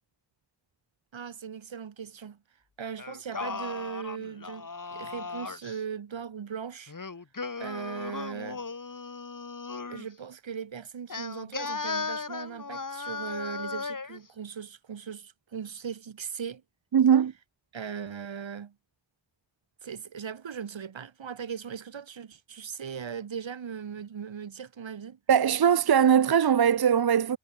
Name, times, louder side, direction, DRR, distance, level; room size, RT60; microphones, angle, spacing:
voice 1, 1.1-2.4 2.8-6.9 7.6-8.7 9.9-16.6 17.7-18.7 19.8-25.2, right 7 dB, 75° right, 2.1 m, -39 dB
Singing, 3.0-5.8 6.9-10.1 11.1-14.2, left 4 dB, 45° left, 4.0 m, -36 dB
voice 2, 16.9-17.3 25.3-27.4, right 8 dB, 55° right, 0.8 m, -21 dB
wide cardioid pair, 115°, 46 cm